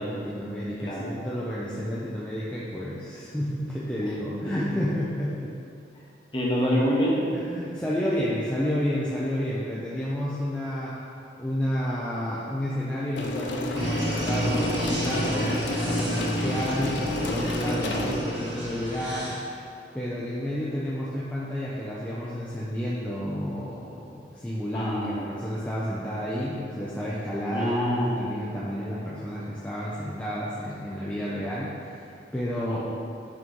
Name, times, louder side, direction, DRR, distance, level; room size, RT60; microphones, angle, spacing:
voice 1, 0.0-5.5 6.3-6.4 7.3-11.0 11.4-19.4 19.9-27.7 28.1-32.8, equal, 5° left, -8 dB, 0.5 m, -31 dB
voice 2, 6.3-7.2 24.7-25.1 27.5-28.1 32.7-32.8, equal, 25° left, -5 dB, 1.0 m, -26 dB
sound 1, 13.2-18.2, left 1 dB, 75° left, 0.5 m, -30 dB
sound 2, 13.8-19.5, equal, 80° right, 1.0 m, -30 dB
6.0 x 3.0 x 5.2 m, 2.5 s
head